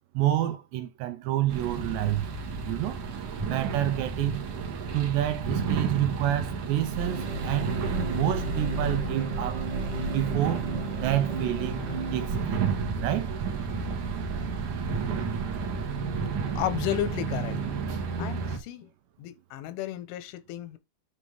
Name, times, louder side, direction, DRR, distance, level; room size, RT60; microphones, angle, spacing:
voice 1, 0.1-2.2 2.7-3.0 3.4-4.5 4.9-7.8 8.1-9.7 10.1-10.7 11.0-12.7 13.0-13.3, right 13 dB, 80° right, 2.9 m, -28 dB
sound 1, 1.5-18.6, right 4 dB, 55° right, 2.4 m, -31 dB
sound 2, 7.0-12.3, right 3 dB, 40° right, 1.7 m, -36 dB
voice 2, 16.5-17.6 18.2-18.9 19.2-20.8, left 12 dB, 85° left, 3.5 m, -33 dB
9.9 x 4.9 x 3.5 m
omnidirectional pair, 5.4 m